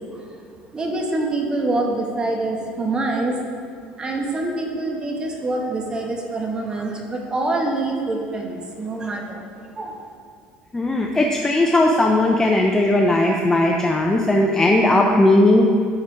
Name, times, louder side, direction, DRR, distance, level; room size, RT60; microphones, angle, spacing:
voice 1, 0.7-3.4 4.0-9.4 9.7-9.9, right 2 dB, 20° right, 1 dB, 1.1 m, -25 dB
voice 2, 10.7-15.6, left 1 dB, 15° left, 1 dB, 0.6 m, -17 dB
13.0 x 4.4 x 4.7 m, 2.2 s
cardioid pair, 130°, 4 cm